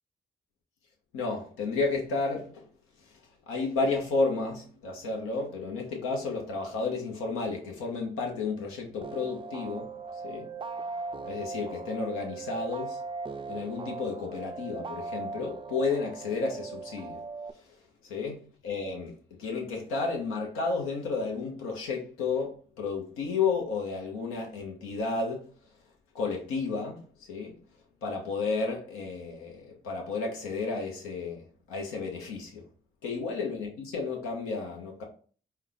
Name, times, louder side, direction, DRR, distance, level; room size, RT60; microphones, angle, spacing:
voice 1, 1.1-2.6 3.0-3.2 3.5-10.8 11.2-13.0 13.5-17.2 17.5-25.5 26.1-27.5 28.0-32.6 33.0-35.0, left 4 dB, 90° left, 0.9 m, -32 dB
sound 1, 9.0-17.5, right 4 dB, 25° right, 0.4 m, -39 dB
4.4 x 2.2 x 3.9 m
supercardioid pair, 45°, 21 cm